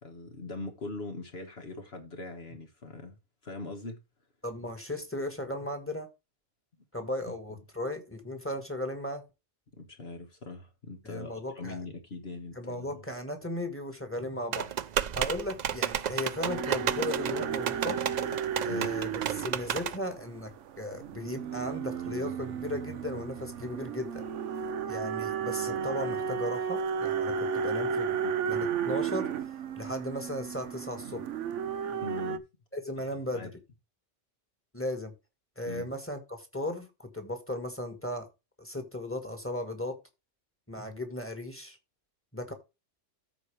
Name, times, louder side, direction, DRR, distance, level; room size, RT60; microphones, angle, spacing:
voice 1, 0.0-3.2 3.4-4.0 9.7-13.0 18.7-18.9 28.1-28.3 32.0-32.4 33.3-33.5 35.6-35.9, left 3 dB, 55° left, 1.7 m, -41 dB
voice 2, 4.4-6.1 6.9-9.2 11.0-11.8 12.5-14.7 15.1-18.0 18.6-20.5 20.8-24.2 24.9-29.3 29.8-31.2 32.7-33.5 34.7-35.1 35.6-38.3 38.6-40.0 40.7-41.8 42.3-42.5, left 1 dB, 10° left, 1.6 m, -36 dB
sound 1, 14.5-20.0, right 9 dB, 55° right, 0.5 m, -32 dB
sound 2, 16.4-32.4, right 6 dB, 75° right, 1.1 m, -33 dB
14.0 x 4.7 x 3.3 m
omnidirectional pair, 1.3 m